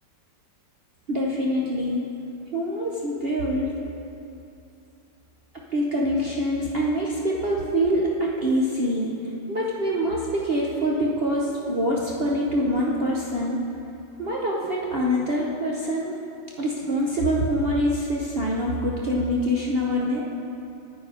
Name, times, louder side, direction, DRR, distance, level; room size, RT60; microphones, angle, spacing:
voice 1, 1.1-2.0 2.5-3.7 5.7-9.1 9.5-13.6 14.2-16.2 16.6-20.2, equal, 50° right, -3 dB, 0.7 m, -25 dB
9.4 x 8.4 x 4.9 m, 2.7 s
omnidirectional pair, 2.0 m